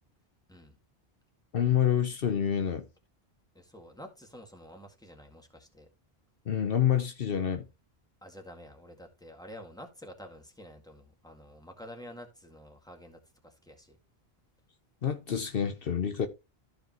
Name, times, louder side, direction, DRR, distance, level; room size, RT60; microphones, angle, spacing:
voice 1, 1.5-2.8 6.5-7.7 15.0-16.3, left 9 dB, 65° left, 1.0 m, -27 dB
voice 2, 3.5-5.9 8.2-14.0, equal, 5° left, 1.9 m, -49 dB
14.0 x 5.0 x 3.0 m
omnidirectional pair, 1.1 m